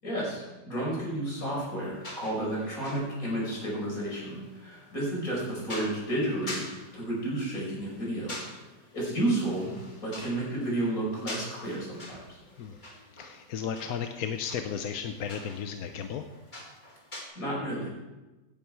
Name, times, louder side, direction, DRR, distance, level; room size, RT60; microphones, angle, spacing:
voice 1, 0.0-8.6 8.9-9.7 10.0-12.4 17.4-17.9, right 1 dB, 45° left, -4 dB, 5.8 m, -32 dB
sound 1, 1.6-17.2, left 1 dB, 25° left, 2.2 m, -46 dB
voice 2, 13.2-16.3, left 7 dB, 60° left, 6 dB, 1.0 m, -34 dB
17.5 x 9.4 x 4.7 m, 1.1 s
omnidirectional pair, 2.1 m